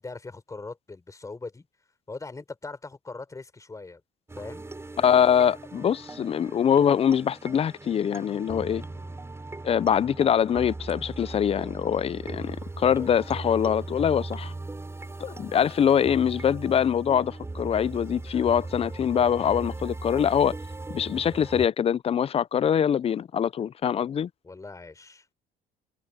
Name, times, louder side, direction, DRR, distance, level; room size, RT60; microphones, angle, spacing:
voice 1, 0.0-1.7 2.1-4.0 4.4-4.6 8.6-9.2 15.4-15.6 24.4-25.3, left 3 dB, 20° left, 4.2 m, -41 dB
sound 1, 4.3-21.7, right 2 dB, 15° right, 5.3 m, -38 dB
voice 2, 5.0-8.8 9.6-14.5 15.2-20.6 20.9-24.3, left 8 dB, 35° left, 0.5 m, -23 dB
cardioid pair, 110°, 17 cm